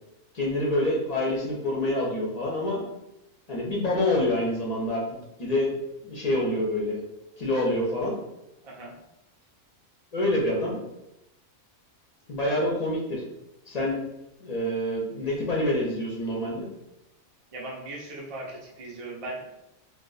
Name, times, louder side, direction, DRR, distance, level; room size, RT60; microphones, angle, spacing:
voice 1, 0.3-2.8 3.5-5.7 6.0-7.0 7.4-8.1 10.1-10.8 12.3-13.2 13.7-14.0 14.4-16.7, left 1 dB, 45° left, -3 dB, 0.5 m, -27 dB
voice 2, 8.6-8.9 17.5-19.5, right 2 dB, 55° right, -2 dB, 0.4 m, -38 dB
2.4 x 2.3 x 3.9 m, 0.89 s
omnidirectional pair, 1.5 m